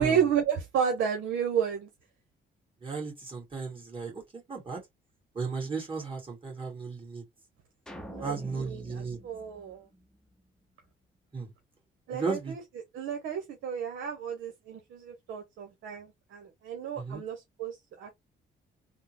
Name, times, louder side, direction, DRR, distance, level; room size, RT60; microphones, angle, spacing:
voice 1, 0.0-1.9 8.1-9.8 12.1-12.6 12.9-18.1, right 8 dB, 75° right, 0.8 m, -32 dB
voice 2, 2.8-4.2 4.5-4.8 5.3-7.2 8.2-9.2 11.3-11.5 12.1-12.6 17.0-17.2, right 4 dB, 25° right, 1.8 m, -35 dB
sound 1, 7.9-10.4, equal, 5° left, 0.7 m, -47 dB
3.5 x 2.0 x 2.9 m
cardioid pair, 90°, 20 cm